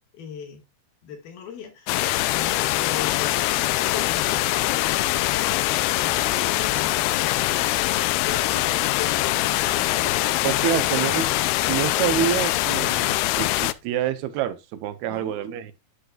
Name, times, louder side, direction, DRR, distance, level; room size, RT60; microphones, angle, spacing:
voice 1, 0.1-0.6 1.0-7.7 8.2-10.4 15.1-15.6, left 7 dB, 75° left, 3.8 m, -39 dB
sound 1, 1.9-13.7, left 17 dB, 90° left, 2.5 m, -23 dB
Laughter, 3.3-13.9, left 3 dB, 55° left, 4.3 m, -46 dB
sound 2, 7.6-12.9, right 5 dB, 55° right, 2.7 m, -47 dB
voice 2, 10.4-11.3 11.7-15.7, right 11 dB, 85° right, 2.9 m, -27 dB
10.0 x 8.1 x 2.4 m
omnidirectional pair, 4.4 m